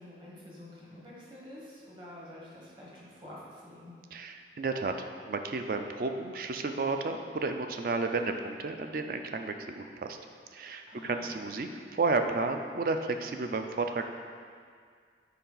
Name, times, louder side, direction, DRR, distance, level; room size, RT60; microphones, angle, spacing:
voice 1, 0.0-3.9 10.9-11.3, left 1 dB, 30° right, -5 dB, 1.3 m, -48 dB
voice 2, 4.1-10.2 10.5-14.0, right 3 dB, 55° right, 6 dB, 0.4 m, -32 dB
6.8 x 4.5 x 3.9 m, 2.1 s
head